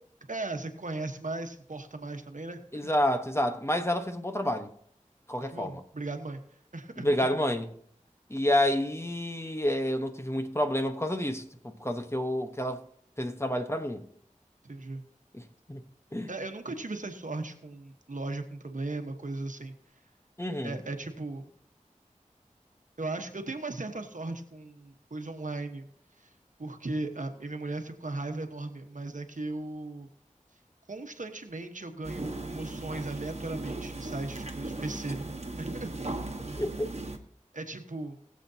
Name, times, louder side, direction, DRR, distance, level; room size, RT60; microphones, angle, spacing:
voice 1, 0.3-2.6 5.4-6.4 6.7-7.1 14.6-15.1 16.3-19.8 20.6-21.5 23.0-25.9 26.2-26.3 26.6-30.1 30.9-35.2 35.6-36.2 37.5-38.2, right 2 dB, 75° right, 1.2 m, -37 dB
voice 2, 2.7-4.7 5.3-5.8 7.0-7.7 8.3-12.8 13.2-14.0 15.3-15.8 16.1-16.3 20.4-20.8 36.6-36.9, left 1 dB, 20° left, 1.1 m, -29 dB
sound 1, 32.0-37.2, right 2 dB, 55° right, 1.3 m, -37 dB
20.5 x 7.4 x 2.8 m
wide cardioid pair, 40°, 13 cm